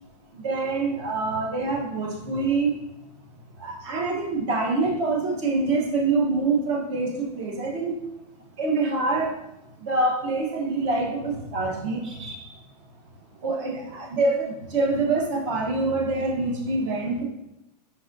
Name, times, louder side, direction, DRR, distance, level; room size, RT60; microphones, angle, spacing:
voice 1, 0.3-2.7 3.6-7.9 8.6-9.3 9.8-12.4 13.4-17.2, right 3 dB, 45° right, 1 dB, 1.0 m, -25 dB
4.6 x 3.9 x 2.6 m, 0.90 s
supercardioid pair, 160°, 21 cm